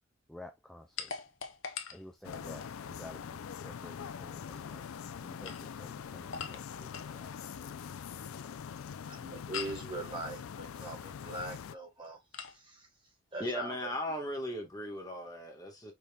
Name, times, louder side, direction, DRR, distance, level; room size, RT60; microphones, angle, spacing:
voice 1, 0.3-1.1 1.9-8.5, left 1 dB, ahead, 0.4 m, -52 dB
sound 1, 1.0-2.8 5.2-7.2 9.5-9.9 12.3-12.6, left 6 dB, 65° left, 0.8 m, -42 dB
sound 2, 2.2-11.8, left 7 dB, 80° left, 0.4 m, -43 dB
voice 2, 9.1-12.2 12.5-12.9 13.3-13.9, right 2 dB, 25° right, 1.5 m, -41 dB
voice 3, 13.4-15.9, left 1 dB, 15° left, 1.5 m, -37 dB
5.2 x 4.0 x 2.3 m
head